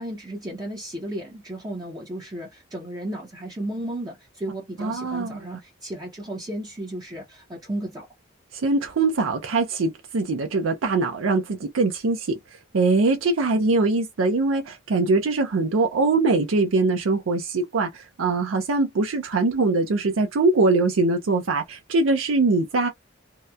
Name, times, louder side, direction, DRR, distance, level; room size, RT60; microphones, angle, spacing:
voice 1, 0.0-8.1, right 1 dB, 20° right, 0.7 m, -34 dB
voice 2, 4.8-5.4 8.5-12.3 12.7-22.9, right 3 dB, 80° right, 0.5 m, -22 dB
2.8 x 2.1 x 2.3 m
head